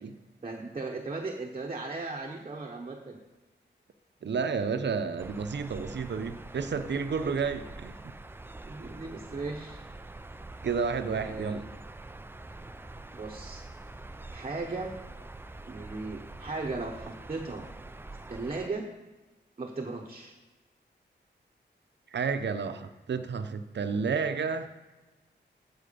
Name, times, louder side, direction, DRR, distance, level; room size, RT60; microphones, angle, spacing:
voice 1, 0.4-3.2 7.2-7.3 8.7-9.8 10.5-10.6 11.1-11.6 13.1-13.6 14.3-14.9 15.7-17.7 18.3-18.9 19.6-20.3, right 3 dB, 30° right, 0 dB, 1.0 m, -37 dB
voice 2, 4.2-8.1 10.6-11.7 22.1-24.7, right 5 dB, 70° right, 9 dB, 0.8 m, -31 dB
sound 1, 5.2-18.7, right 2 dB, 10° right, 0.4 m, -45 dB
12.5 x 4.6 x 6.9 m, 1.2 s
wide cardioid pair, 115°, 19 cm